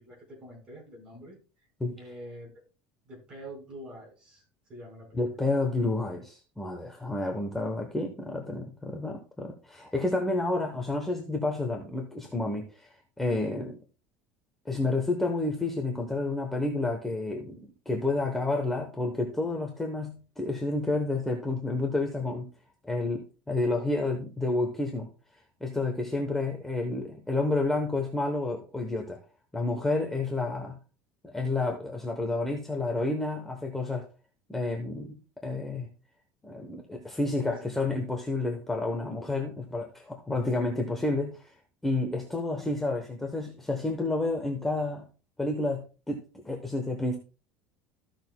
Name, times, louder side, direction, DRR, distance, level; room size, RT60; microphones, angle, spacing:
voice 1, 0.0-1.4 2.0-2.6 3.0-4.4 4.7-5.4 37.5-37.9, right 1 dB, 25° right, -1 dB, 4.5 m, -46 dB
voice 2, 5.1-12.9 13.2-13.8 14.7-22.5 22.8-25.1 25.6-29.2 29.5-30.7 31.2-34.0 34.5-35.9 36.4-41.5 41.8-45.0 45.4-45.8 46.1-47.2, left 2 dB, 5° left, 2 dB, 0.9 m, -30 dB
14.5 x 6.5 x 2.2 m, 0.35 s
cardioid pair, 155°, 4 cm